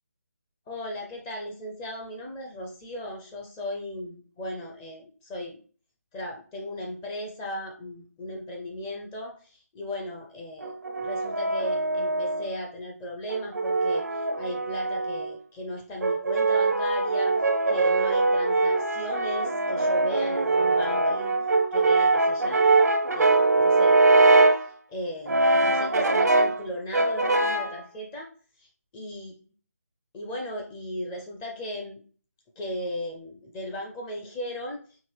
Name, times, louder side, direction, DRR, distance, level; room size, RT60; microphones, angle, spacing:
voice 1, 0.7-5.6 6.1-17.4 17.7-21.4 21.7-22.6 23.1-24.0 24.6-28.3 28.6-28.7 28.9-29.3 30.1-32.0 32.6-34.8, left 1 dB, 15° left, 0 dB, 0.5 m, -36 dB
Brass instrument, 10.6-12.6 13.3-15.3 16.0-24.7 25.3-26.6 26.9-27.8, right 3 dB, 75° right, 0.5 m, -22 dB
4.5 x 2.8 x 3.3 m, 0.40 s
figure-of-eight pair, 150°, 9 cm